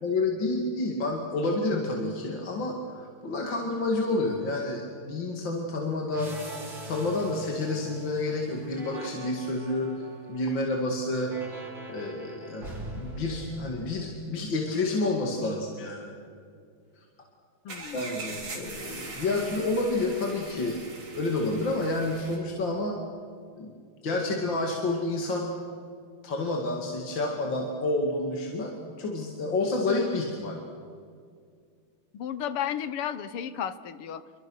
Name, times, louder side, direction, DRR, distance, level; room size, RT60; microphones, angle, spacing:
voice 1, 0.0-6.4 6.8-11.3 11.9-16.1 17.9-20.8 21.1-23.0 23.6-23.7 24.0-25.5 26.2-30.6, left 2 dB, 55° left, 0 dB, 3.0 m, -29 dB
sound 1, 6.1-14.6, right 2 dB, 55° right, 4.7 m, -43 dB
voice 2, 17.7-18.1 32.1-34.2, left 9 dB, 80° left, 13 dB, 2.0 m, -33 dB
sound 2, 17.7-22.4, right 3 dB, 75° right, 4.8 m, -41 dB
28.5 x 24.5 x 6.4 m, 2.2 s
omnidirectional pair, 2.4 m